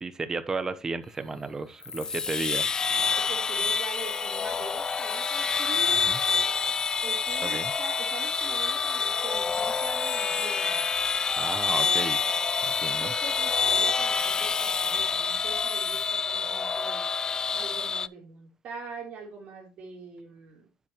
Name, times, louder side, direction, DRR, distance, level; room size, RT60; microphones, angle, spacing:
voice 1, 0.0-2.7 6.1-6.2 7.4-7.7 11.4-12.2 12.6-13.1, right 3 dB, 20° right, 1.0 m, -33 dB
sound 1, 1.8-18.1, left 5 dB, 25° left, 0.3 m, -27 dB
voice 2, 3.2-6.0 7.0-10.8 11.7-12.1 13.0-17.1 17.5-20.7, right 5 dB, 55° right, 3.7 m, -43 dB
9.9 x 7.5 x 3.1 m
cardioid pair, 105°, 3 cm